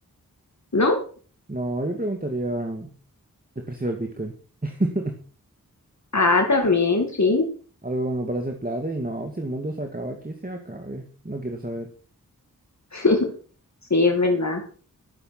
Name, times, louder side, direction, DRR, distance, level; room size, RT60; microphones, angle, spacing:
voice 1, 1.5-2.9 3.6-4.3 4.6-5.2 7.8-11.9, right 1 dB, 25° right, 3 dB, 2.1 m, -29 dB
voice 2, 6.1-7.4 12.9-13.3 13.9-14.6, left 3 dB, 50° left, 3 dB, 2.4 m, -20 dB
12.5 x 7.7 x 6.0 m, 0.41 s
cardioid pair, 40°, 36 cm